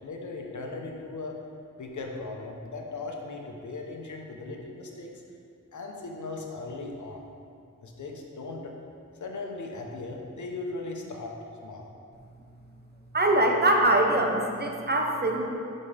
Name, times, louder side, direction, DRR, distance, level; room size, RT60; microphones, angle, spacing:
voice 1, 0.0-1.4 1.8-5.1 5.7-7.2 7.8-8.7 9.2-11.3 11.6-11.9, left 3 dB, 70° left, 1 dB, 0.9 m, -38 dB
voice 2, 13.1-15.4, right 1 dB, 30° right, 1 dB, 0.7 m, -23 dB
5.3 x 5.3 x 5.0 m, 2.4 s
wide cardioid pair, 85°, 31 cm